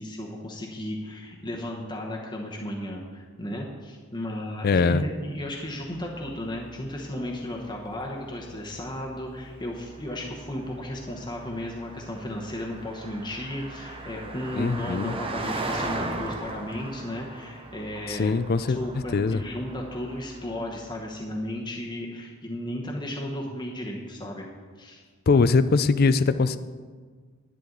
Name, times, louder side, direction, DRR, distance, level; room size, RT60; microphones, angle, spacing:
voice 1, 0.0-18.3 18.7-24.5 24.8-25.0, left 1 dB, 20° left, -2 dB, 1.0 m, -34 dB
voice 2, 4.6-5.0 14.5-15.2 18.1-18.8 19.1-19.4 25.3-26.6, left 4 dB, 45° left, 13 dB, 0.4 m, -22 dB
Car passing by, 5.4-21.2, right 2 dB, 25° right, 0.8 m, -39 dB
11.0 x 10.0 x 3.9 m, 1.5 s
head